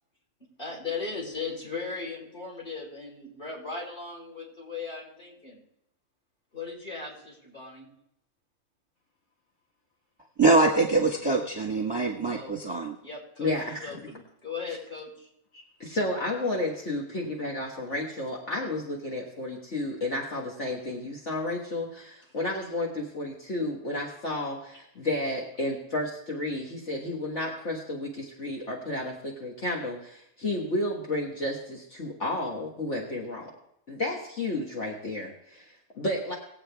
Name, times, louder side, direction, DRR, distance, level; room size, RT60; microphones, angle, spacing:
voice 1, 0.6-5.6 6.5-7.9 12.2-12.6 13.0-15.3, left 4 dB, 35° left, 4.6 m, -37 dB
voice 2, 10.4-12.9, right 3 dB, 20° right, 1.2 m, -23 dB
voice 3, 13.4-14.0 15.5-33.5 33.9-36.3, left 1 dB, 55° left, 1.9 m, -32 dB
20.0 x 8.0 x 3.5 m
omnidirectional pair, 1.5 m